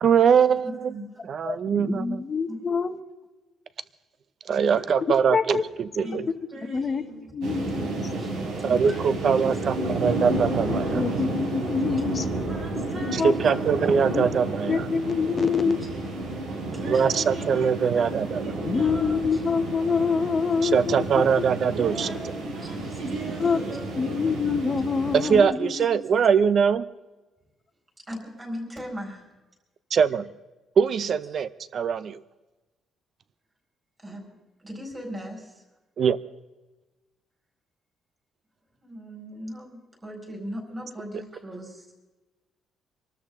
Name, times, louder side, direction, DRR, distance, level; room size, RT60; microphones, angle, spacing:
voice 1, 0.0-0.9 1.3-2.2 4.5-6.2 8.6-11.0 13.1-14.9 16.9-18.5 20.6-22.3 25.1-26.8 29.9-30.3 30.8-32.2 36.0-36.2, right 6 dB, 40° right, 16 dB, 0.6 m, -22 dB
voice 2, 0.9-1.2 2.5-2.7 6.0-6.2 6.5-6.6 8.2-8.3 8.6-8.8 9.3-9.4 11.1-11.2 11.8-12.2 12.9-13.1 16.9-17.2 19.3-19.4 20.4-20.5 22.1-23.0 25.6-26.0 28.1-29.2 31.0-31.1 34.0-35.6 38.8-41.9, equal, 15° right, 0 dB, 4.7 m, -39 dB
voice 3, 1.4-3.0 5.3-5.6 6.1-6.2 6.6-7.8 10.3-10.4 10.9-12.3 13.0-13.3 14.1-14.2 14.6-15.8 18.6-21.2 23.4-23.6 23.9-25.9, left 5 dB, 25° left, 10 dB, 0.9 m, -26 dB
voice 4, 6.5-7.2 8.8-9.4 9.7-10.9 12.5-13.9 16.8-17.9 18.3-19.2 21.7-24.1, right 2 dB, 55° right, -4 dB, 5.4 m, -38 dB
sound 1, 7.4-25.4, right 2 dB, 85° right, 4.6 m, -31 dB
25.5 x 13.0 x 3.7 m, 1.1 s
cardioid pair, 180°, 0 cm